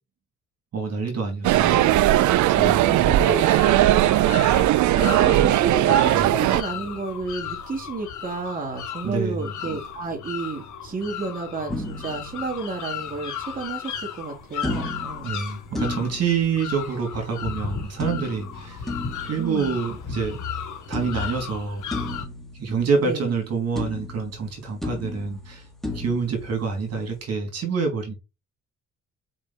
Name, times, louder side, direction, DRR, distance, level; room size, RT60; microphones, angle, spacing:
voice 1, 0.7-1.8 2.3-3.3 6.1-6.3 9.0-9.5 15.2-18.9 19.3-20.4 20.9-21.8 22.6-25.6 25.9-28.1, right 5 dB, 55° right, 2.7 m, -27 dB
sound 1, 1.4-6.6, right 14 dB, 70° right, 0.5 m, -18 dB
voice 2, 1.6-2.0 2.5-3.4 4.4-15.3 19.4-19.8 23.0-23.3, right 4 dB, 30° right, 2.3 m, -31 dB
sound 2, 3.2-22.2, left 7 dB, 75° left, 3.3 m, -35 dB
sound 3, 11.7-13.2 14.6-17.2 18.0-20.6 20.9-23.5 23.8-27.2, left 2 dB, ahead, 1.8 m, -35 dB
4.9 x 4.9 x 4.1 m
cardioid pair, 90°, 30 cm